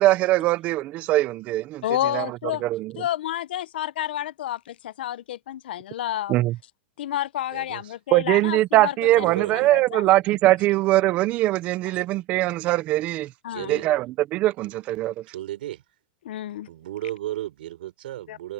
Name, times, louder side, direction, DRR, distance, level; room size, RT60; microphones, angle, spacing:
voice 1, 0.0-1.8 2.1-2.3 2.6-2.9 6.3-6.6 8.1-13.3 13.7-14.1 14.3-15.1, right 16 dB, 25° right, 0.4 m, -21 dB
voice 2, 1.8-2.6 3.0-6.4 7.0-9.3 9.7-10.1 13.4-13.8 16.2-16.7 18.3-18.4, left 12 dB, 80° left, 0.6 m, -30 dB
voice 3, 7.5-7.9 9.1-9.8 13.5-14.0 15.3-15.8 16.7-18.5, right 14 dB, 75° right, 4.5 m, -34 dB
supercardioid pair, 170°, 5 cm